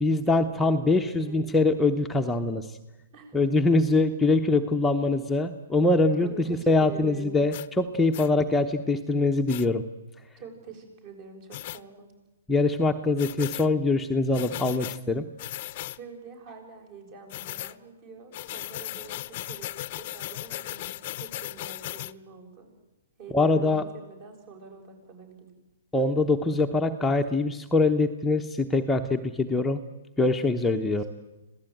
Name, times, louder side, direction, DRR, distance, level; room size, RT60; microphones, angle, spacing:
voice 1, 0.0-2.7 3.3-9.8 12.5-15.2 23.3-23.8 25.9-29.8 30.2-31.0, left 2 dB, 5° left, 2 dB, 0.9 m, -23 dB
voice 2, 0.6-1.5 3.1-3.4 6.2-7.4 10.4-12.1 15.9-19.7 20.0-22.7 23.2-25.5 30.9-31.1, right 5 dB, 40° right, 5 dB, 6.9 m, -46 dB
sound 1, 7.5-7.7 8.1-8.3 9.5-9.7 11.5-11.8 13.2-13.7 14.3-15.0 15.4-16.0 17.3-17.7 18.3-22.1, left 15 dB, 45° left, 0.7 m, -37 dB
26.0 x 16.5 x 9.2 m, 1.1 s
hypercardioid pair, 145°, 0 cm